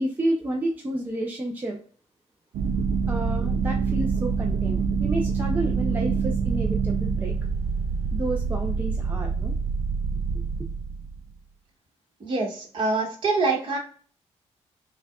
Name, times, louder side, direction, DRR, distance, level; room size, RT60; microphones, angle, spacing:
voice 1, 0.0-1.8 3.1-7.3 8.1-9.5 10.3-10.4, right 1 dB, 15° right, 0 dB, 0.5 m, -30 dB
sound 1, 2.5-11.2, right 5 dB, 75° right, 0.4 m, -26 dB
voice 2, 12.2-13.8, right 3 dB, 45° right, 0 dB, 1.4 m, -25 dB
6.1 x 2.3 x 2.3 m, 0.43 s
wide cardioid pair, 160°, 12 cm